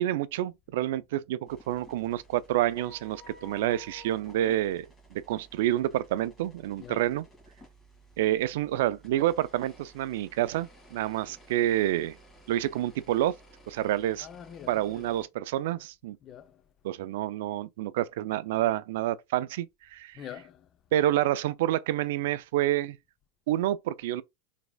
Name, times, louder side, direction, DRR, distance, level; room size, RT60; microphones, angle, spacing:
voice 1, 0.0-7.2 8.2-12.2 12.5-13.3 13.7-14.3 14.7-16.2 16.8-20.2 20.9-23.0 23.5-24.2, right 13 dB, 75° right, 0.3 m, -28 dB
sound 1, 1.5-15.3, right 1 dB, 20° left, 1.9 m, -54 dB
voice 2, 6.8-7.1 11.2-11.3 14.2-15.2 16.2-16.7 20.1-20.8, left 9 dB, 35° left, 0.5 m, -46 dB
3.9 x 3.5 x 2.2 m
supercardioid pair, 125°, 0 cm